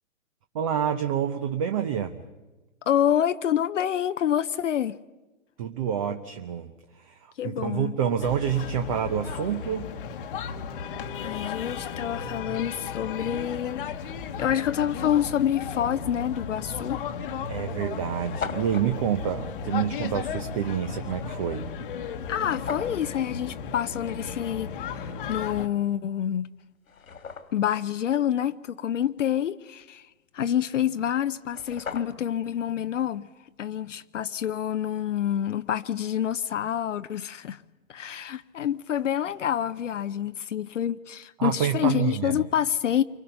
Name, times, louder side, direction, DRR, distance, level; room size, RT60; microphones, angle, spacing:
voice 1, 0.5-2.2 5.6-6.7 6.9-9.9 17.5-21.7 41.4-42.4, right 9 dB, 25° right, 0.7 m, -28 dB
voice 2, 2.9-5.0 7.4-8.0 11.2-13.9 14.4-17.0 22.3-26.5 27.5-30.1 30.3-33.3 33.6-37.6 37.9-43.0, left 10 dB, 65° left, 0.8 m, -27 dB
sound 1, 8.2-25.7, left 6 dB, 40° left, 1.3 m, -35 dB
sound 2, 18.0-18.9 22.4-23.0 25.9-26.0 26.6-27.7 31.1-31.2 31.4-32.4, left 6 dB, 80° left, 2.5 m, -38 dB
28.5 x 24.5 x 5.7 m
hypercardioid pair, 155°, 41 cm